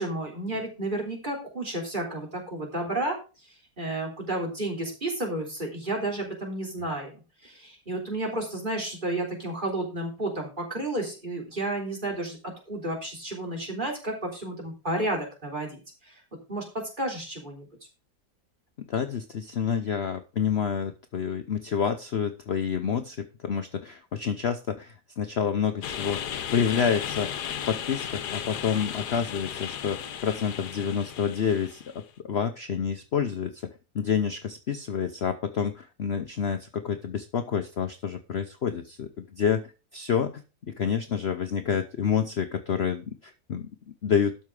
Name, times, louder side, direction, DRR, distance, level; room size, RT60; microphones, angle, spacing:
voice 1, 0.0-3.2 3.8-15.8 16.5-16.6 17.0-17.7, right 1 dB, 30° right, 1 dB, 3.6 m, -31 dB
voice 2, 18.9-26.2 26.5-27.3 27.7-33.5 33.9-40.4 40.8-43.7 44.0-44.3, left 7 dB, 50° left, 8 dB, 0.9 m, -28 dB
sound 1, 25.8-32.0, left 9 dB, 75° left, 1.5 m, -35 dB
12.5 x 5.7 x 4.8 m, 0.31 s
omnidirectional pair, 1.8 m